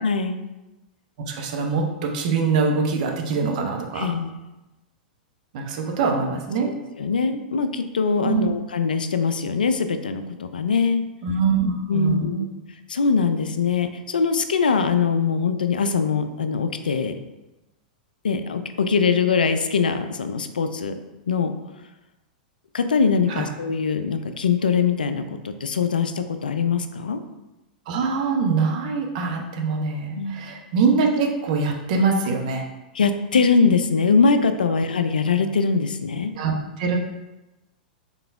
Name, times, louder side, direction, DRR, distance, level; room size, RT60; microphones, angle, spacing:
voice 1, 0.0-0.4 3.9-4.3 6.6-6.7 7.0-11.0 11.9-12.5 12.9-17.2 18.2-20.9 21.3-21.5 22.7-27.2 30.2-30.5 32.9-36.3, left 5 dB, 80° left, 9 dB, 0.4 m, -22 dB
voice 2, 1.3-4.1 5.5-6.7 8.2-8.5 11.2-12.4 23.3-23.5 27.9-32.6 36.4-36.5 36.8-37.0, right 4 dB, 55° right, 2 dB, 0.8 m, -23 dB
3.9 x 3.8 x 3.5 m, 1.0 s
hypercardioid pair, 100°, 5 cm